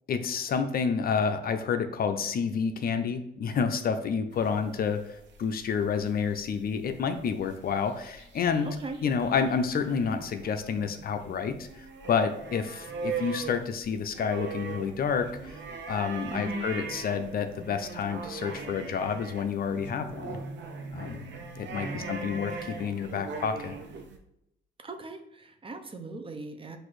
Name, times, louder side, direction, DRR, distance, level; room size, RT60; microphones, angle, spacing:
voice 1, 0.1-8.7 9.0-11.7 12.1-15.6 15.9-20.4 20.9-21.2 21.6-23.7, left 6 dB, 50° left, 8 dB, 0.5 m, -29 dB
sound 1, 4.3-24.2, right 4 dB, 65° right, 0.7 m, -41 dB
voice 2, 8.6-9.0 16.3-16.8 21.8-22.4 24.8-26.8, right 2 dB, 25° right, 6 dB, 0.6 m, -39 dB
5.9 x 2.6 x 3.1 m, 0.80 s
cardioid pair, 90°, 20 cm